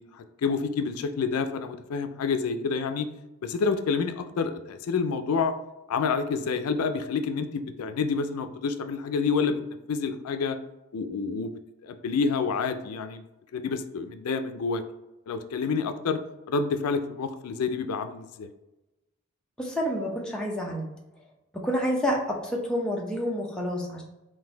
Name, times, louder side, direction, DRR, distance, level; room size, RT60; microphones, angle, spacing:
voice 1, 0.0-3.1 3.4-5.5 5.9-9.6 9.9-10.6 10.9-11.5 11.8-13.2 13.5-14.8 15.3-16.2 16.5-18.5, left 5 dB, 85° left, 9 dB, 0.4 m, -28 dB
voice 2, 19.6-20.9 21.5-24.0, equal, 5° left, -3 dB, 0.6 m, -28 dB
3.9 x 2.6 x 3.8 m, 0.98 s
head